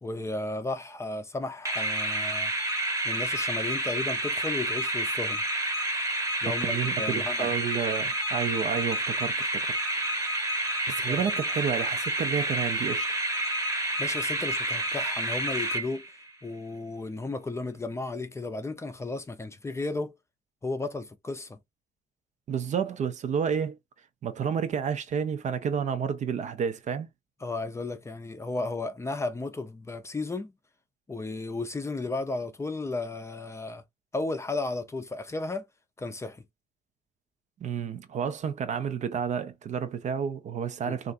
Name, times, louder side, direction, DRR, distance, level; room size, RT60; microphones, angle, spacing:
voice 1, 0.0-2.5 3.0-5.4 6.4-7.5 11.0-11.2 14.0-16.0 16.4-20.2 20.6-21.6 27.4-30.5 31.1-33.8 34.1-35.7 36.0-36.4 40.9-41.0, left 2 dB, 15° left, 0.5 m, -34 dB
sound 1, 1.6-16.3, right 1 dB, 20° right, 0.9 m, -29 dB
voice 2, 6.4-10.3 10.9-13.2 22.5-23.8 24.2-27.1 37.6-41.1, right 7 dB, 45° right, 0.5 m, -30 dB
3.2 x 2.5 x 2.4 m
cardioid pair, 110°, 17 cm